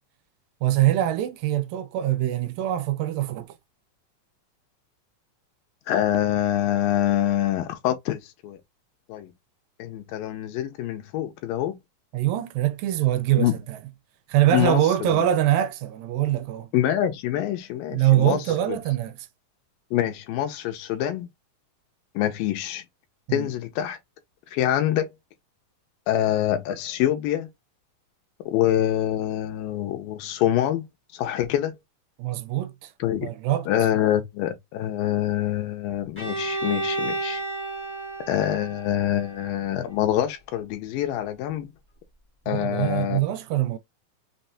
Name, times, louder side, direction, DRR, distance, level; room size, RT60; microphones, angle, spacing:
voice 1, 0.6-3.6 12.1-13.8 14.3-16.7 17.9-19.3 23.3-23.5 32.2-32.9 33.2-33.7 42.5-43.8, right 13 dB, 80° right, 2.2 m, -23 dB
voice 2, 5.9-8.6 9.1-9.3 9.8-11.8 13.4-13.5 14.5-14.8 16.7-18.4 19.9-21.3 22.2-22.8 23.3-24.0 24.5-25.1 26.1-27.5 28.5-30.8 31.2-31.7 33.0-33.3 33.7-37.4 38.3-41.7 42.5-43.2, left 12 dB, 85° left, 2.3 m, -25 dB
Bowed string instrument, 36.1-40.0, right 2 dB, 15° left, 0.4 m, -32 dB
6.0 x 2.1 x 2.6 m
omnidirectional pair, 4.1 m